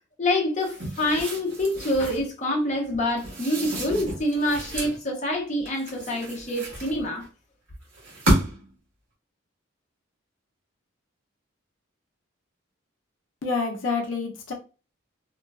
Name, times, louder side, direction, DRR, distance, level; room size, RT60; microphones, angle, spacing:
voice 1, 0.2-7.2, left 1 dB, 35° left, 0.7 m, -26 dB
sound 1, 0.6-2.3 3.2-5.0 5.7-7.3 7.9-8.7, right 1 dB, 85° right, 1.4 m, -30 dB
voice 2, 13.4-14.5, left 4 dB, 75° left, 0.6 m, -27 dB
3.0 x 2.2 x 2.3 m
head